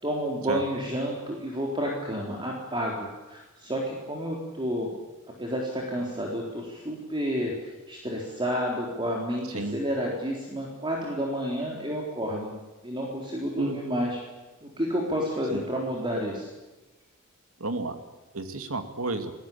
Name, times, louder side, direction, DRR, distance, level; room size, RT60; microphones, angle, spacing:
voice 1, 0.0-4.9 5.4-12.5 12.8-14.2 14.6-16.5, equal, 25° right, -2 dB, 4.0 m, -30 dB
voice 2, 17.6-18.0 18.3-19.3, right 2 dB, 80° right, 7 dB, 2.6 m, -31 dB
29.0 x 18.5 x 8.8 m, 1.1 s
head